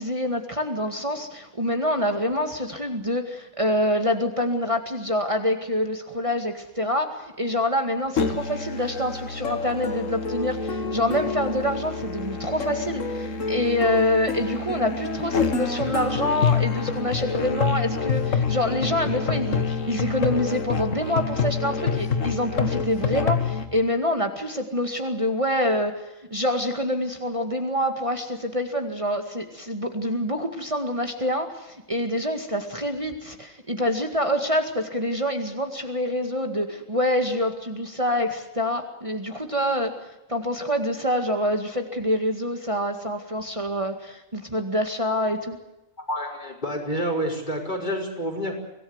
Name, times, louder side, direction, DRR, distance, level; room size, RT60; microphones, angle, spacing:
voice 1, 0.0-26.0 26.3-45.6, left 1 dB, 25° right, 5 dB, 2.1 m, -26 dB
Musical instrument, 8.2-23.7, left 5 dB, 70° left, 2.0 m, -27 dB
voice 2, 46.1-48.5, equal, 35° left, 2 dB, 5.8 m, -28 dB
25.5 x 18.5 x 8.0 m, 0.97 s
omnidirectional pair, 1.4 m